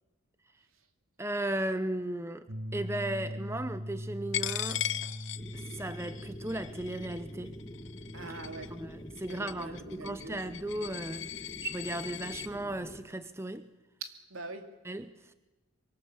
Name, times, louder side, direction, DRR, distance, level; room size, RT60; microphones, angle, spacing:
voice 1, 1.2-2.4 2.7-4.8 5.5-7.5 8.2-8.4 8.7-11.3 11.6-13.7 14.8-15.1, right 1 dB, 10° right, 0.7 m, -36 dB
sound 1, 2.5-9.1, equal, 50° right, 1.4 m, -42 dB
Coin (dropping), 4.3-12.5, left 12 dB, 60° left, 0.8 m, -39 dB
sound 2, 5.4-13.0, equal, 20° left, 1.9 m, -47 dB
voice 2, 8.1-8.8 9.3-10.4 14.0-14.7, right 3 dB, 80° right, 2.6 m, -43 dB
25.0 x 23.5 x 7.2 m
head